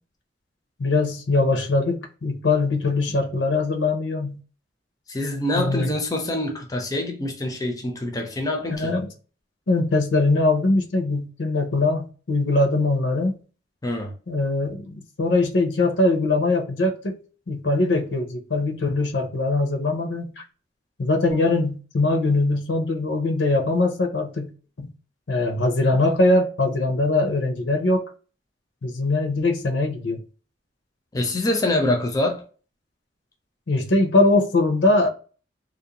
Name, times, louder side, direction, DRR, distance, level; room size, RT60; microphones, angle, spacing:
voice 1, 0.8-4.4 5.5-5.9 8.8-9.1 9.7-13.3 14.3-17.2 17.5-20.4 21.0-24.5 24.8-24.9 25.3-28.1 28.8-30.2 33.7-35.1, left 2 dB, 85° left, 0.7 m, -22 dB
voice 2, 5.1-8.9 13.8-14.1 31.1-32.4, left 1 dB, 20° left, 0.5 m, -25 dB
2.5 x 2.1 x 2.8 m
head